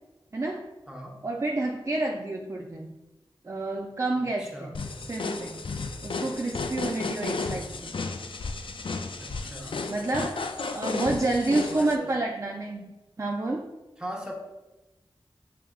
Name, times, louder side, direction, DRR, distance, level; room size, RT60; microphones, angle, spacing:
voice 1, 0.3-0.7 1.2-2.9 3.4-4.8 5.1-5.7 6.0-7.9 9.9-10.4 10.7-12.9 13.2-13.7, right 2 dB, 30° right, 1 dB, 0.3 m, -29 dB
voice 2, 0.9-1.2 4.2-4.7 6.9-7.4 9.2-9.8 11.0-11.1 11.7-12.1 14.0-14.3, equal, 10° right, -2 dB, 1.0 m, -40 dB
sound 1, 4.7-12.0, left 3 dB, 65° left, 0.4 m, -33 dB
6.7 x 3.3 x 2.3 m, 1.1 s
wide cardioid pair, 65°, 9 cm